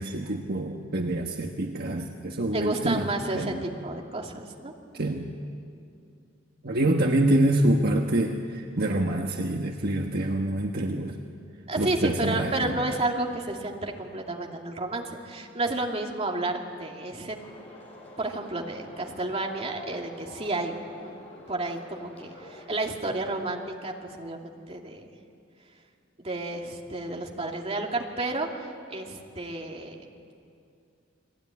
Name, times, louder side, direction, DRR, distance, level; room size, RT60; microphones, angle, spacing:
voice 1, 0.0-3.1 3.3-3.6 4.9-5.4 6.6-11.2 11.8-12.8, right 1 dB, 55° right, 2 dB, 1.4 m, -26 dB
voice 2, 2.5-4.7 11.7-17.4 18.2-21.1 21.5-25.1 26.2-30.1, right 2 dB, 30° right, 1 dB, 2.6 m, -31 dB
sound 1, 17.4-22.6, left 2 dB, 35° left, 6.9 m, -47 dB
29.5 x 20.5 x 9.7 m, 2.5 s
head